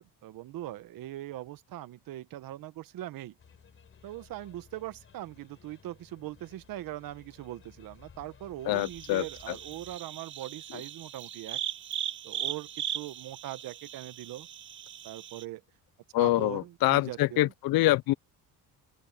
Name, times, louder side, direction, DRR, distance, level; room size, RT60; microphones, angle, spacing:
voice 1, 0.0-3.3 4.0-11.6 12.2-14.5 15.0-15.6 16.2-17.5, right 14 dB, 65° right, 1.1 m, -41 dB
sound 1, 3.4-10.0, left 7 dB, 35° left, 3.9 m, -57 dB
voice 2, 8.6-9.6 16.1-18.1, left 17 dB, 70° left, 0.6 m, -26 dB
sound 2, 8.7-15.4, right 10 dB, 35° right, 0.5 m, -39 dB
open air
cardioid pair, 155°, 37 cm